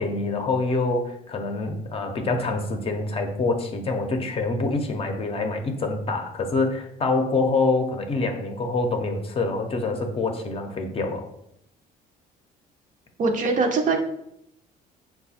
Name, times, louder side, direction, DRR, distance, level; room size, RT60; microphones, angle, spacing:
voice 1, 0.0-11.3, left 3 dB, 35° left, 4 dB, 0.6 m, -26 dB
voice 2, 13.2-14.0, right 4 dB, 50° right, 4 dB, 0.6 m, -22 dB
4.6 x 2.2 x 4.2 m, 0.77 s
cardioid pair, 110°, 17 cm